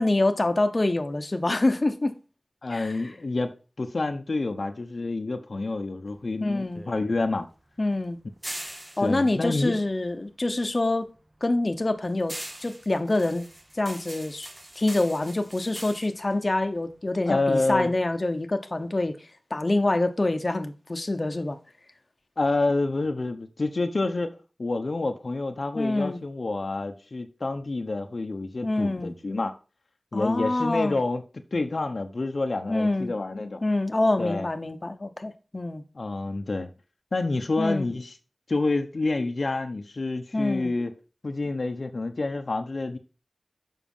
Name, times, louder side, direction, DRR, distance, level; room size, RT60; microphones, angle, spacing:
voice 1, 0.0-2.2 2.7-3.1 6.4-6.8 7.8-8.2 9.0-11.1 11.4-13.5 13.8-14.5 14.8-21.6 25.7-26.2 28.6-29.1 30.1-31.0 32.7-33.1 33.6-35.8 37.6-37.9 40.3-40.7, left 2 dB, 45° left, 1.0 m, -26 dB
voice 2, 2.6-7.5 9.0-9.8 17.3-17.9 22.4-29.5 30.1-31.2 31.5-33.6 34.2-34.5 35.9-36.7 37.1-38.1 38.5-40.9 41.2-43.0, left 3 dB, 70° left, 0.9 m, -28 dB
sound 1, 6.1-10.6 10.9-17.4, right 1 dB, 25° right, 1.1 m, -43 dB
7.3 x 5.7 x 5.5 m
wide cardioid pair, 70°, 0 cm